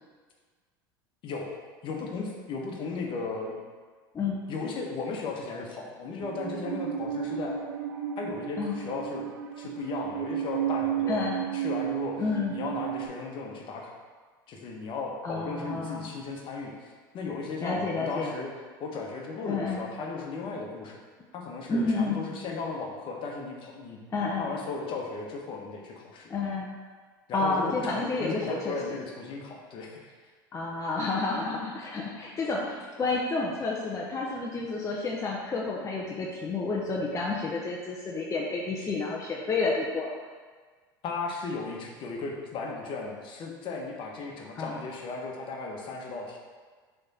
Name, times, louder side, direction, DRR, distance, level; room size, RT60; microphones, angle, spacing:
voice 1, 1.8-3.6 4.5-7.6 8.2-9.3 9.6-12.2 12.5-14.0 14.5-18.5 18.8-21.0 21.3-26.3 27.3-30.1 41.0-46.4, left 4 dB, 45° left, 0 dB, 1.2 m, -36 dB
voice 2, 4.1-4.5 8.6-8.8 11.1-11.5 12.2-12.5 15.2-16.1 17.6-18.3 19.4-19.8 21.7-22.2 24.1-24.5 26.3-26.7 27.3-29.0 30.5-40.1 44.6-44.8, left 3 dB, 25° left, -3 dB, 0.9 m, -30 dB
Musical instrument, 6.2-13.1, right 10 dB, 80° right, 0.5 m, -33 dB
6.6 x 3.5 x 4.2 m, 1.5 s
hypercardioid pair, 85°, 12 cm